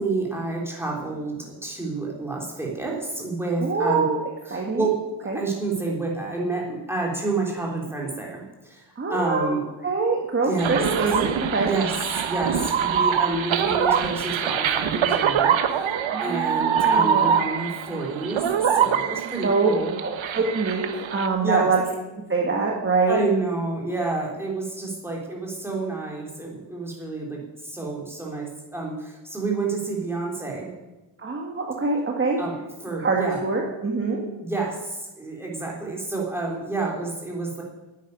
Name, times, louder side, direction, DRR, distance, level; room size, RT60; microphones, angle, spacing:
voice 1, 0.0-4.1 4.5-5.0 5.2-9.6 10.5-10.8 11.6-11.9 12.2-15.9 16.2-19.9 21.4-21.7 23.1-30.7 32.4-32.6 32.8-33.4 34.4-37.6, right 3 dB, 5° right, -2 dB, 3.5 m, -29 dB
voice 2, 3.6-4.2 4.5-4.9 5.2-5.4 9.0-9.6 9.8-11.7 16.1-17.4 19.4-19.7 20.0-21.8 22.3-23.2 31.2-32.4 33.0-34.2, right 4 dB, 25° right, 0 dB, 1.6 m, -24 dB
sound 1, 10.6-21.3, right 8 dB, 80° right, 1.2 m, -24 dB
11.0 x 9.4 x 9.8 m, 1.1 s
wide cardioid pair, 170°, 46 cm